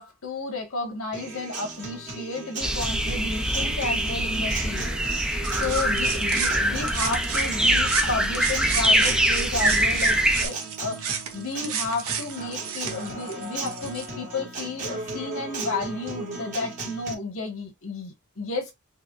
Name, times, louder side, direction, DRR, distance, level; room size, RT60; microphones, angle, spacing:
voice 1, 0.0-5.3 5.6-18.7, left 3 dB, 70° left, 1.5 m, -32 dB
Acoustic guitar, 1.1-17.1, right 2 dB, 35° right, 1.8 m, -36 dB
sound 1, 2.6-10.5, right 1 dB, 5° right, 0.5 m, -24 dB
sound 2, 5.4-7.5 7.8-14.1, right 7 dB, 85° right, 0.9 m, -32 dB
4.6 x 3.1 x 2.4 m
head